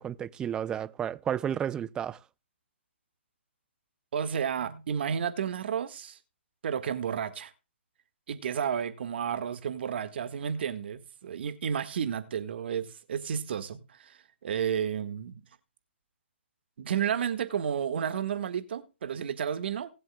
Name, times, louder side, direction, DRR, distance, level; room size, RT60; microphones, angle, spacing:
voice 1, 0.0-2.2, right 9 dB, 10° right, 0.4 m, -32 dB
voice 2, 4.1-6.2 6.6-7.5 8.3-15.3 16.8-19.9, right 8 dB, 55° right, 1.5 m, -32 dB
19.0 x 7.6 x 2.2 m
hypercardioid pair, 145°, 7 cm